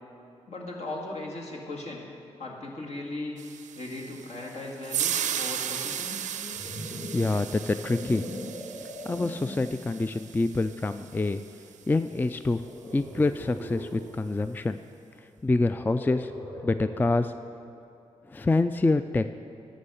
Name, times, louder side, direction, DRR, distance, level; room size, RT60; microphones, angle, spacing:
voice 1, 0.5-2.0 2.4-3.4 3.7-6.3, left 2 dB, 65° left, -2 dB, 2.0 m, -37 dB
sound 1, 3.4-11.7, right 9 dB, 80° right, 0.5 m, -36 dB
sound 2, 6.2-9.9 10.5-10.8 12.5-14.1 15.7-17.2, equal, 85° left, 2.3 m, -40 dB
voice 2, 6.9-8.2 9.0-11.4 11.9-12.6 12.9-14.8 15.2-16.3 16.6-17.3 18.3-19.2, left 2 dB, 15° left, 11 dB, 0.3 m, -26 dB
11.0 x 6.3 x 6.7 m, 2.8 s
cardioid pair, 55°, 12 cm